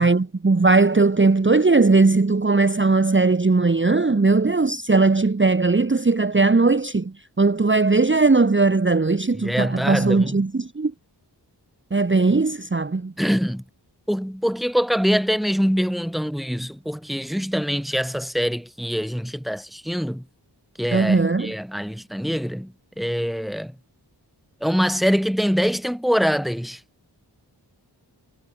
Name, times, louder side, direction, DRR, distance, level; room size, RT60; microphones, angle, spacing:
voice 1, 0.0-10.9 11.9-13.1 20.9-21.5, right 3 dB, 30° right, 0.9 m, -19 dB
voice 2, 9.4-10.4 13.2-13.6 14.1-20.2 20.8-23.7 24.6-26.8, equal, ahead, 1.6 m, -24 dB
wide cardioid pair, 55°, 42 cm